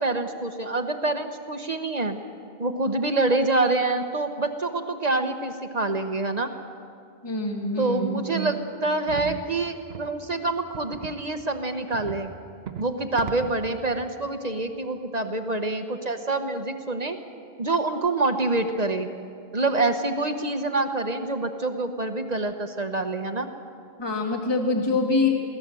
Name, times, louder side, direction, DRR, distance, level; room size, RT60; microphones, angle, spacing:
voice 1, 0.0-2.2 2.6-6.5 7.8-12.3 12.8-17.2 17.6-19.1 19.5-23.5, right 2 dB, 40° right, 7 dB, 1.1 m, -26 dB
voice 2, 7.2-8.5 24.0-25.3, left 2 dB, 25° left, 1 dB, 1.8 m, -25 dB
sound 1, 9.1-9.4 9.9-10.1 10.7-11.2 11.9-12.2 12.7-12.9 13.2-13.6, right 8 dB, 80° right, 1.2 m, -36 dB
23.0 x 16.5 x 7.7 m, 2.4 s
omnidirectional pair, 1.0 m